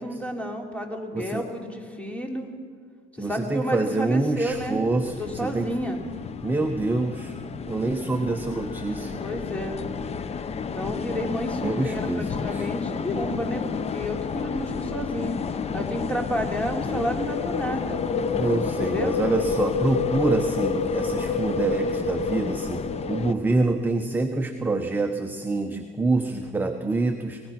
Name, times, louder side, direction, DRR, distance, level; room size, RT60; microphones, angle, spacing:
voice 1, 0.0-2.5 3.2-6.0 9.2-9.8 10.7-18.0 18.8-19.2, equal, 10° left, 2 dB, 3.1 m, -31 dB
voice 2, 3.2-5.7 6.4-7.3 7.7-9.2 11.6-12.7 18.4-27.4, right 2 dB, 10° right, 5 dB, 1.0 m, -26 dB
sound 1, 4.4-23.3, left 5 dB, 40° left, 1.0 m, -30 dB
24.5 x 19.0 x 6.0 m, 2.2 s
cardioid pair, 110°, 17 cm